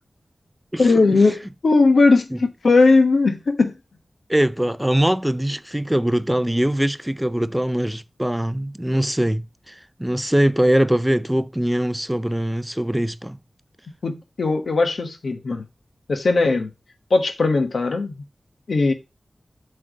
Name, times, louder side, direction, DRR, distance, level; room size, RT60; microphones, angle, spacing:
voice 1, 0.8-3.7 14.0-15.6 16.1-16.7 17.1-18.1 18.7-18.9, left 3 dB, 80° left, 1.1 m, -18 dB
voice 2, 4.3-13.4, right 1 dB, 10° right, 0.4 m, -22 dB
7.8 x 3.3 x 5.0 m
wide cardioid pair, 70°, 0 cm